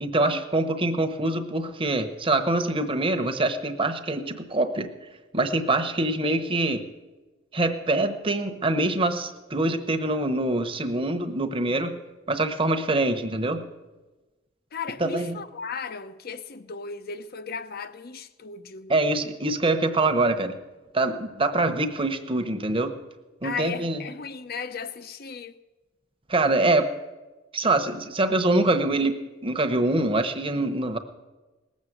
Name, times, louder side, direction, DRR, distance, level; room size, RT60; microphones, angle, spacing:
voice 1, 0.0-4.9 5.3-6.8 7.5-11.9 12.3-13.6 15.0-15.4 18.9-20.5 20.9-23.0 23.4-24.0 26.3-26.9 27.5-31.0, right 2 dB, 30° right, 1.0 m, -24 dB
voice 2, 14.7-18.9 23.4-25.5, left 5 dB, 55° left, 0.7 m, -36 dB
19.0 x 7.4 x 7.9 m
head